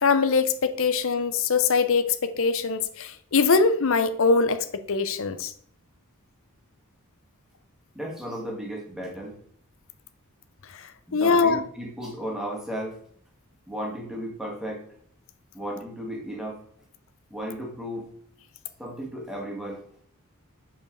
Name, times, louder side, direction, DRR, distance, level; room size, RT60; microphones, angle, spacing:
voice 1, 0.0-5.5 10.7-11.6, left 4 dB, 60° left, 11 dB, 0.7 m, -23 dB
voice 2, 7.9-9.4 11.1-13.0 13.7-14.9 15.5-16.6 17.3-18.1 18.8-19.8, equal, ahead, -1 dB, 1.7 m, -34 dB
5.5 x 4.7 x 6.2 m, 0.63 s
head